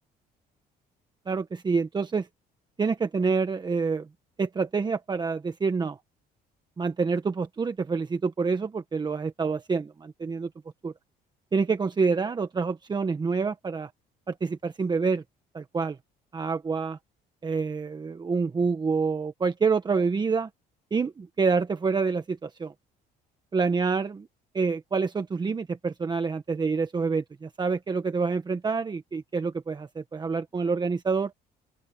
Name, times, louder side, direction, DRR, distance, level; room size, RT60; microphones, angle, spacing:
voice 1, 1.3-2.3 2.8-4.1 4.4-6.0 6.8-10.5 10.8-10.9 11.5-13.9 14.3-15.2 15.5-16.0 16.3-17.0 17.4-20.5 20.9-22.7 23.5-24.3 24.5-31.3, right 4 dB, 25° right, 1.3 m, -27 dB
open air
cardioid pair, 110°, 17 cm